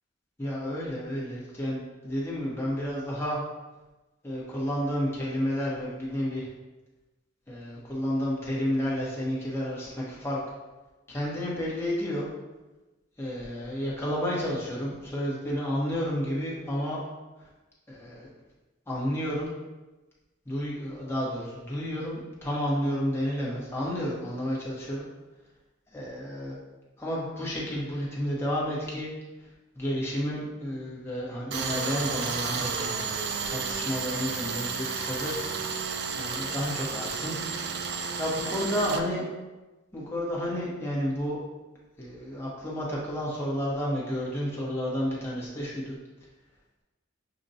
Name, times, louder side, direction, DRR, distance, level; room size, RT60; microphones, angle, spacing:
voice 1, 0.4-3.4 4.2-6.5 7.5-10.4 11.1-12.3 13.2-17.0 17.9-18.3 18.9-19.5 20.4-25.0 25.9-26.6 27.0-29.1 29.7-35.4 36.1-37.3 38.2-39.2 39.9-41.4 42.0-46.0, equal, 10° left, -6 dB, 0.9 m, -31 dB
Tools, 31.5-39.0, right 5 dB, 55° right, 0.3 m, -32 dB
6.6 x 2.2 x 2.6 m, 1.1 s
head